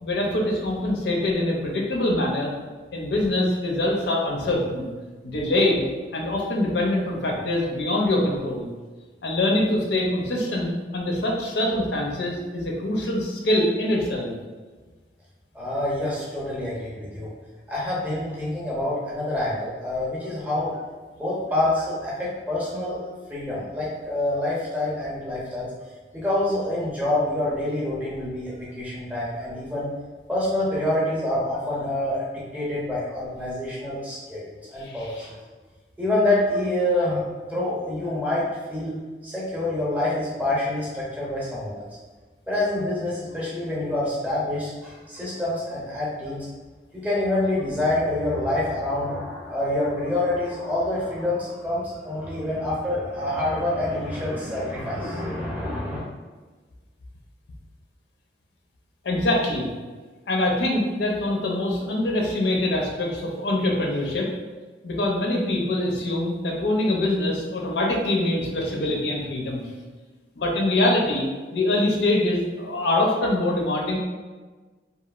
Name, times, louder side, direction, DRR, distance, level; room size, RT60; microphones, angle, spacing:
voice 1, 0.0-2.5 2.9-4.9 5.2-5.8 6.1-8.7 9.2-14.3 34.8-35.3 59.0-59.7 60.3-64.3 64.8-69.7 70.4-71.3 71.5-74.0, left 1 dB, 75° left, -1 dB, 0.5 m, -24 dB
voice 2, 15.5-17.3 17.7-20.7 21.2-23.0 23.3-25.7 26.1-29.9 30.3-35.4 36.0-38.9 39.2-41.9 42.5-46.5 46.9-56.0, left 1 dB, 10° right, -7 dB, 0.6 m, -27 dB
2.9 x 2.3 x 2.3 m, 1.3 s
head